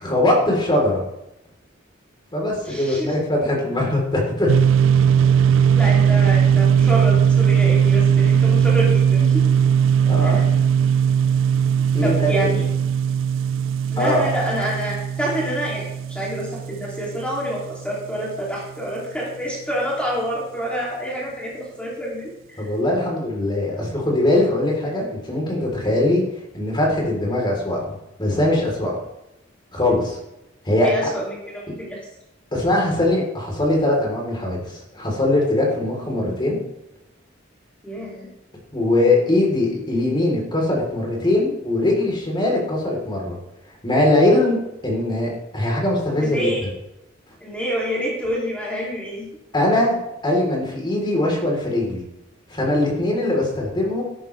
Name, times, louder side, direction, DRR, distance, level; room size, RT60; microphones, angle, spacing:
voice 1, 0.0-1.0 2.3-4.5 10.1-10.4 11.9-12.3 14.0-14.2 22.6-26.2 26.5-27.9 28.2-29.0 29.7-30.2 30.7-30.9 31.7-31.8 32.5-36.6 38.7-43.3 43.8-46.5 49.5-50.0 50.2-52.0 52.5-54.0, left 1 dB, 25° left, -2 dB, 4.1 m, -21 dB
voice 2, 2.7-3.1 5.7-9.5 10.2-10.4 11.8-12.7 13.9-22.7 30.8-32.0 37.8-38.3 46.2-46.7 47.4-49.3, equal, 5° left, -5 dB, 3.2 m, -27 dB
sound 1, 4.5-18.0, right 7 dB, 70° right, 0.4 m, -18 dB
13.0 x 12.0 x 3.5 m, 0.89 s
head